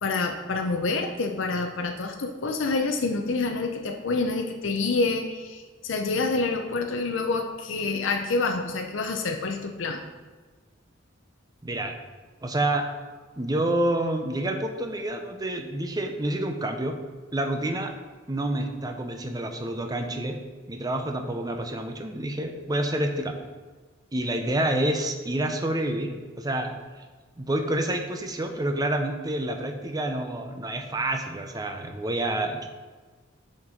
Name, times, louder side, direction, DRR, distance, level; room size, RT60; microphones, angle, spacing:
voice 1, 0.0-10.0, left 3 dB, 70° left, 3 dB, 0.6 m, -27 dB
voice 2, 11.6-11.9 12.4-12.9 13.4-17.0 17.3-17.9 18.3-20.4 20.7-23.4 24.1-27.0 27.4-32.7, right 1 dB, 20° right, 5 dB, 0.6 m, -28 dB
7.1 x 4.4 x 4.9 m, 1.4 s
head